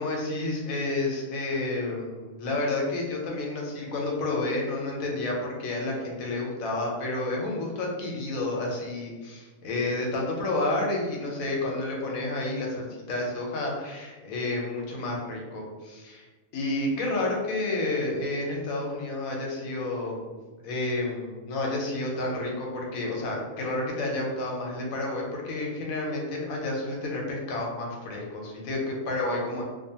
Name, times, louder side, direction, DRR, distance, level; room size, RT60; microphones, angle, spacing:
voice 1, 0.0-16.3 16.5-20.2 20.6-29.6, left 2 dB, 85° left, -1 dB, 1.1 m, -30 dB
2.5 x 2.3 x 2.7 m, 1.3 s
omnidirectional pair, 1.4 m